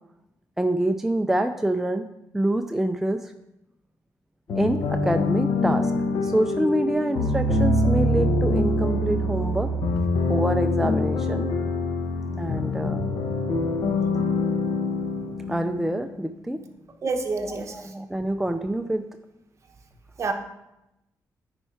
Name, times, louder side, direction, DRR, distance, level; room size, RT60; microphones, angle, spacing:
voice 1, 0.6-2.1 2.3-3.3 4.6-9.7 10.3-11.5 12.4-13.0 15.5-16.6 17.4-19.1, right 1 dB, 5° right, 6 dB, 0.4 m, -26 dB
sound 1, 4.5-16.2, left 2 dB, 80° left, 1.0 m, -24 dB
voice 2, 17.0-17.7 20.2-20.3, right 3 dB, 45° right, 5 dB, 1.0 m, -28 dB
9.8 x 4.5 x 4.5 m, 0.89 s
cardioid pair, 105°, 7 cm